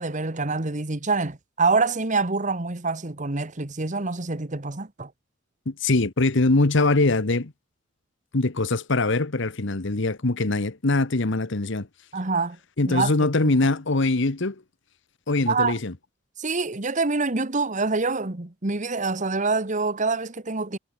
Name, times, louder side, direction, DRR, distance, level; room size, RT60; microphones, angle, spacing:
voice 1, 0.0-5.1 12.1-12.6 12.8-13.5 15.5-15.8 16.4-20.8, right 3 dB, 40° right, 1.4 m, -26 dB
voice 2, 5.7-7.5 8.3-11.9 12.8-14.5 15.3-15.9, left 2 dB, 65° left, 1.2 m, -22 dB
head